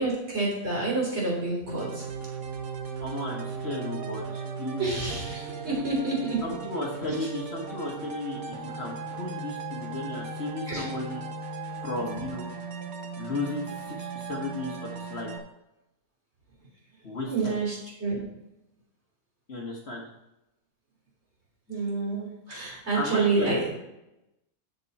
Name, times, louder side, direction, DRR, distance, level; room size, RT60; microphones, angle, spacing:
voice 1, 0.0-2.0 4.8-6.4 10.7-10.9 17.3-18.2 21.7-23.6, right 3 dB, 45° right, -4 dB, 3.7 m, -28 dB
sound 1, 1.7-15.4, right 4 dB, 70° right, 1.4 m, -37 dB
voice 2, 3.0-4.9 6.4-11.3 11.8-12.5 13.2-15.3 17.0-17.5 19.5-20.1 22.6-23.8, left 2 dB, 45° left, -1 dB, 1.5 m, -34 dB
12.5 x 4.6 x 4.2 m, 0.88 s
omnidirectional pair, 1.6 m